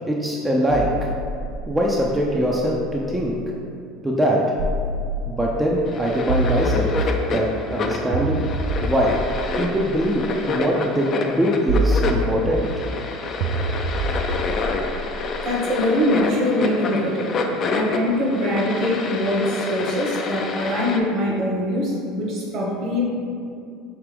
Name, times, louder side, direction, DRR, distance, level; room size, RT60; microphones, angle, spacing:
voice 1, 0.1-1.1 1.7-3.4 4.0-4.4 5.3-6.9 7.3-8.4 8.8-9.2 9.6-12.7, equal, 10° right, -3 dB, 0.4 m, -22 dB
sound 1, 0.7-3.5 4.6-5.6 6.3-7.4 8.1-10.4 11.7-12.8 13.4-15.6, right 1 dB, 70° right, 0.4 m, -26 dB
sound 2, 5.9-21.0, left 3 dB, 45° left, 0.4 m, -28 dB
voice 2, 15.4-17.3 17.7-23.1, left 1 dB, 55° right, -3 dB, 1.2 m, -23 dB
4.6 x 2.8 x 3.4 m, 2.4 s
supercardioid pair, 95°, 0 cm